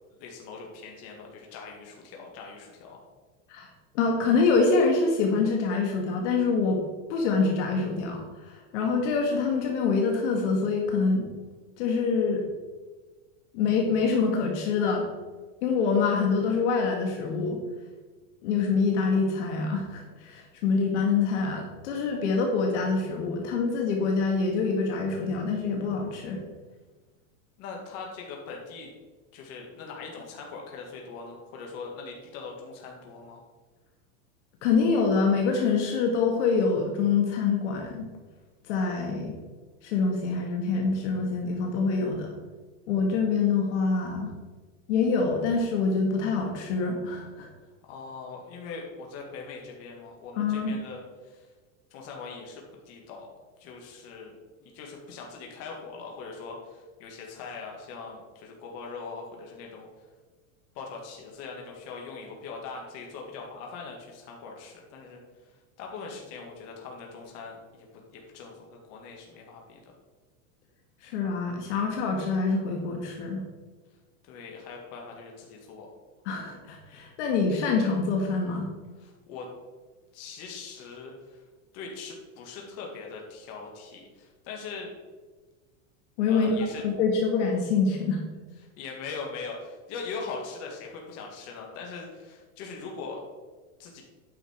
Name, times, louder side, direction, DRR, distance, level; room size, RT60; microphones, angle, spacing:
voice 1, 0.2-3.0 27.6-28.9 29.3-33.4 47.8-51.5 51.9-53.3 53.6-54.3 54.6-59.9 60.8-65.2 65.8-67.9 68.1-69.8 74.3-75.9 79.0-79.5 80.1-81.4 81.7-84.9 86.3-86.8 88.8-93.2 93.8-94.0, left 4 dB, 40° left, 0 dB, 1.9 m, -41 dB
voice 2, 3.9-6.8 7.1-11.3 11.8-12.4 13.5-15.1 15.6-17.6 18.4-26.4 34.6-38.0 38.7-39.4 39.8-42.3 42.9-44.3 44.9-47.5 50.4-50.7 71.0-73.4 76.2-78.7 86.2-86.5 86.8-88.2, left 4 dB, 60° left, 1 dB, 1.7 m, -25 dB
9.2 x 5.9 x 4.4 m, 1.3 s
supercardioid pair, 160°, 40 cm